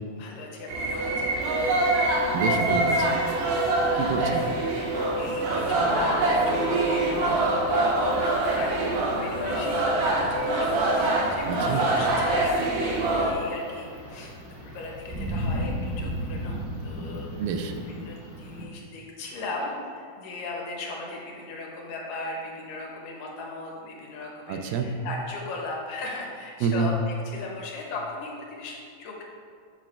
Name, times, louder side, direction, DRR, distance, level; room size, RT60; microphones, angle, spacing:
voice 1, 0.2-1.4 3.8-4.0 4.4-29.2, left 3 dB, 80° left, -1 dB, 2.5 m, -38 dB
sound 1, 0.7-13.3, right 2 dB, 70° right, 2.2 m, -24 dB
sound 2, 1.4-18.6, equal, 45° right, 0.4 m, -39 dB
voice 2, 2.3-3.2 3.9-4.4 11.5-11.8 17.4-17.7 24.5-24.9 26.6-26.9, right 6 dB, 90° right, 5 dB, 2.3 m, -27 dB
7.4 x 3.2 x 5.6 m, 2.3 s
omnidirectional pair, 4.0 m